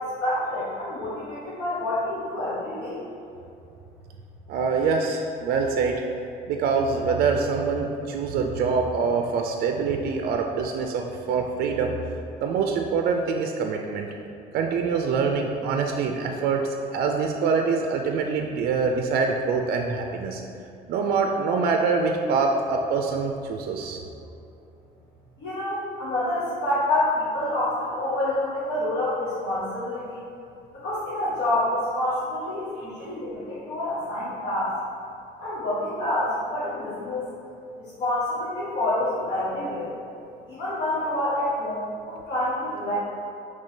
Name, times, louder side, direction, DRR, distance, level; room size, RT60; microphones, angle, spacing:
voice 1, 0.0-3.0 25.4-30.2 30.8-34.7 35.4-37.2 37.8-39.9 40.5-43.0, left 1 dB, 80° left, -10 dB, 1.1 m, -27 dB
voice 2, 4.5-6.0 6.5-11.9 12.4-14.1 14.5-20.4 20.9-24.0, right 5 dB, 65° right, 2 dB, 0.4 m, -25 dB
5.1 x 3.2 x 2.7 m, 2.7 s
cardioid pair, 110°, 17 cm